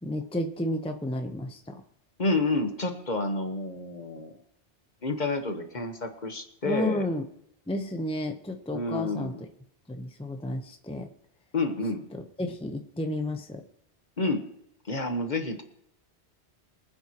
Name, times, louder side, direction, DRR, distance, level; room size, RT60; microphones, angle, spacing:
voice 1, 0.0-1.8 6.6-7.3 7.7-9.3 9.9-11.1 12.1-13.6, left 1 dB, 5° left, 4 dB, 0.8 m, -32 dB
voice 2, 2.2-4.3 5.0-7.0 8.7-9.4 11.5-12.0 14.2-14.4 14.8-15.6, left 2 dB, 45° left, 6 dB, 1.4 m, -29 dB
24.0 x 9.2 x 3.0 m, 0.78 s
omnidirectional pair, 1.1 m